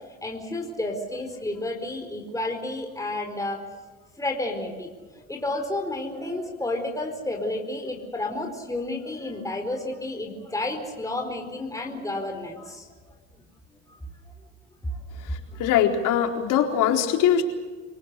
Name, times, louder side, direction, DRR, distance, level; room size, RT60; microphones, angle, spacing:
voice 1, 0.2-3.6 4.2-12.9 14.2-14.3 14.9-15.0 15.4-15.6, left 2 dB, 10° left, 2 dB, 4.5 m, -31 dB
voice 2, 15.2-17.4, left 9 dB, 70° left, 3 dB, 4.3 m, -22 dB
26.5 x 18.5 x 8.2 m, 1.3 s
supercardioid pair, 85°, 32 cm